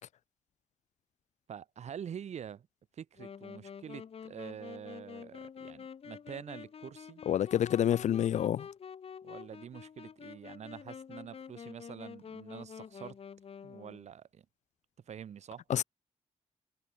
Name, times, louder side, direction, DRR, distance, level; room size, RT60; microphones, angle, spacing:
voice 1, 1.5-2.7 2.9-7.2 9.2-13.2 13.6-14.5 15.0-15.6, right 8 dB, 70° right, 3.7 m, -46 dB
Wind instrument woodwind instrument, 3.2-14.1, left 7 dB, 55° left, 6.0 m, -48 dB
voice 2, 7.3-8.7 15.7-15.8, left 10 dB, 80° left, 0.5 m, -28 dB
wide cardioid pair, 175°, 12 cm